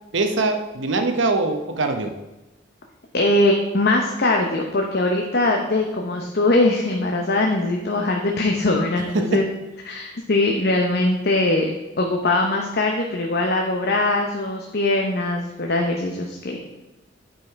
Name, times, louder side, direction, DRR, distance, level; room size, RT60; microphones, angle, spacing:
voice 1, 0.1-2.1 9.1-9.2, right 3 dB, 75° right, 6 dB, 0.9 m, -22 dB
voice 2, 3.1-9.5 9.9-11.7 12.0-16.6, left 2 dB, 55° left, 1 dB, 0.9 m, -21 dB
8.8 x 5.5 x 4.6 m, 1.0 s
head